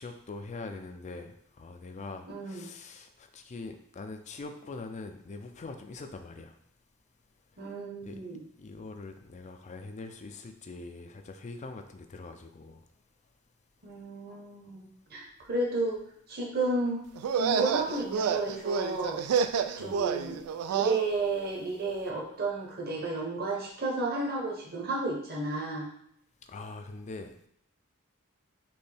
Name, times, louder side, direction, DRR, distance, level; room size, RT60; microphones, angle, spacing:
voice 1, 0.0-6.5 8.0-8.2 8.6-12.8 19.8-20.0 26.4-27.3, left 3 dB, 35° left, 0.4 m, -43 dB
voice 2, 2.3-2.7 7.6-8.4 13.8-16.0 16.3-17.0 17.4-19.2 19.8-20.4 20.7-25.9, right 2 dB, 45° right, 1.1 m, -32 dB
sound 1, 17.2-21.0, right 6 dB, 90° right, 0.3 m, -29 dB
4.4 x 3.1 x 3.4 m
head